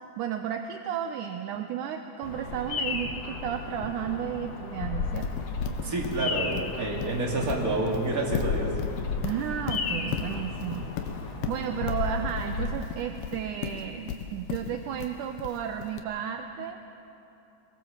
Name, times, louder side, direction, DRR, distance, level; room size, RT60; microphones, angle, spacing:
voice 1, 0.2-5.3 9.2-16.8, right 9 dB, 75° right, 6 dB, 1.9 m, -33 dB
Bird vocalization bird call bird song, 2.2-12.7, left 4 dB, 55° left, 2.3 m, -34 dB
Livestock farm animals working animals, 5.2-16.0, left 8 dB, 80° left, 3.2 m, -35 dB
voice 2, 5.8-8.7, right 2 dB, 25° right, -2 dB, 3.0 m, -28 dB
23.5 x 21.0 x 7.3 m, 3.0 s
omnidirectional pair, 4.3 m